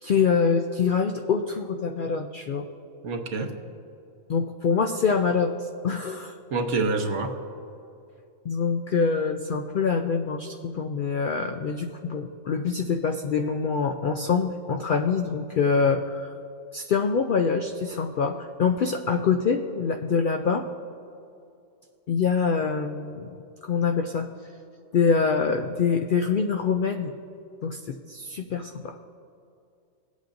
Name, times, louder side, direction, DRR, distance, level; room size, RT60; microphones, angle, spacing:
voice 1, 0.0-2.7 4.3-6.3 8.5-16.3 16.7-20.7 22.1-23.4 23.6-24.3 24.9-27.1 27.6-29.0, left 5 dB, 80° left, 6 dB, 0.4 m, -25 dB
voice 2, 3.0-3.5 6.5-7.4, right 3 dB, 60° right, 5 dB, 1.1 m, -26 dB
18.5 x 8.4 x 2.6 m, 2.6 s
omnidirectional pair, 1.4 m